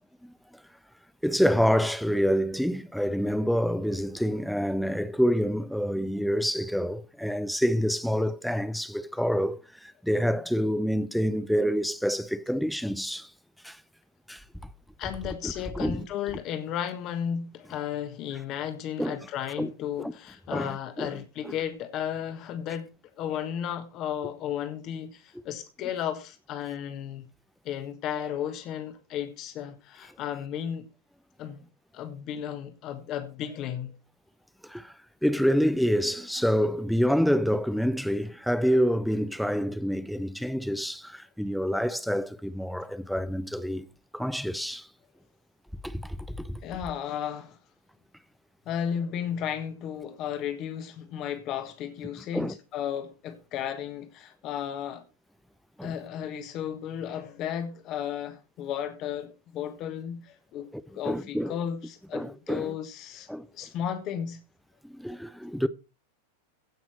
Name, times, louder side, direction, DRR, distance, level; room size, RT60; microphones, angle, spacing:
voice 1, 1.2-13.3 13.6-13.8 14.3-14.4 15.4-16.1 19.0-19.2 19.6-19.7 20.0-20.1 20.5-21.1 34.7-34.9 35.2-43.9 44.1-44.9 45.8-46.6 52.3-52.5 55.8-55.9 60.7-61.6 62.1-62.7 63.3-63.5 64.8-65.7, equal, ahead, 0.7 m, -27 dB
voice 2, 15.0-22.9 23.2-27.3 27.6-30.9 31.4-31.6 31.9-34.0 46.6-47.6 48.7-55.0 55.8-60.7 60.9-63.3 63.5-64.4, left 9 dB, 35° left, 1.5 m, -34 dB
16.5 x 6.0 x 4.4 m
figure-of-eight pair, 90°, 0 cm